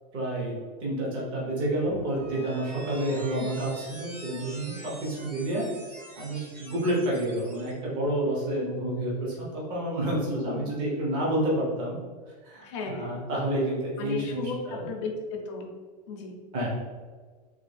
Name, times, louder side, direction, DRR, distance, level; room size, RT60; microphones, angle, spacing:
voice 1, 0.1-5.7 6.2-12.0 12.4-14.4 14.7-14.9 16.5-16.7, right 1 dB, 25° right, -5 dB, 0.7 m, -29 dB
sound 1, 1.8-7.7, right 1 dB, 70° right, 1.4 m, -45 dB
voice 2, 10.1-10.7 12.6-13.2 14.0-15.7 16.1-16.4, left 4 dB, 45° left, 2 dB, 0.6 m, -35 dB
3.5 x 2.3 x 3.3 m, 1.5 s
supercardioid pair, 175°, 21 cm